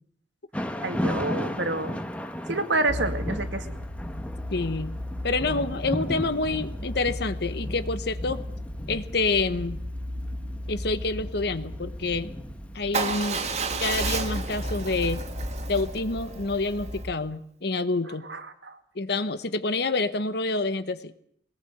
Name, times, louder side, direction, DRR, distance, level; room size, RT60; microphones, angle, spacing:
Thunder / Rain, 0.5-16.6, equal, 5° left, 1.4 m, -36 dB
voice 1, 0.8-2.0 2.5-3.7 18.3-18.8, right 2 dB, 70° right, 7 dB, 2.3 m, -28 dB
sound 1, 2.9-17.1, left 1 dB, 55° right, 2.3 m, -36 dB
voice 2, 4.5-4.9 5.2-8.4 8.9-9.8 10.7-12.4 12.7-13.5 13.8-15.2 15.7-18.3 18.9-21.1, left 3 dB, 60° left, 12 dB, 1.1 m, -27 dB
Motorcycle / Engine starting / Idling, 12.9-17.0, right 4 dB, 35° right, 2.1 m, -31 dB
22.0 x 19.0 x 8.0 m, 0.66 s
head